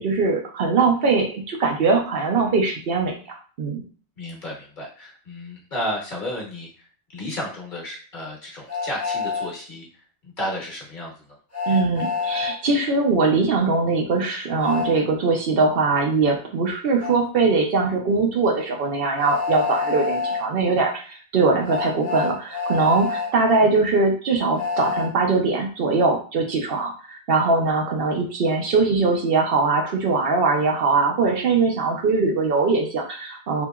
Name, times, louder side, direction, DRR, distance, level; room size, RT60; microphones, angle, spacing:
voice 1, 0.0-3.1 3.6-3.8 11.7-33.7, right 3 dB, 65° right, 1 dB, 0.8 m, -21 dB
voice 2, 4.2-11.4 27.6-27.7, left 1 dB, 50° left, -2 dB, 1.1 m, -33 dB
Train, 8.7-9.5 11.5-12.6 14.6-14.9 17.0-17.1 19.2-20.4 21.6-23.3 24.6-25.1, left 5 dB, 15° left, 0.7 m, -27 dB
2.8 x 2.8 x 2.3 m, 0.41 s
omnidirectional pair, 1.1 m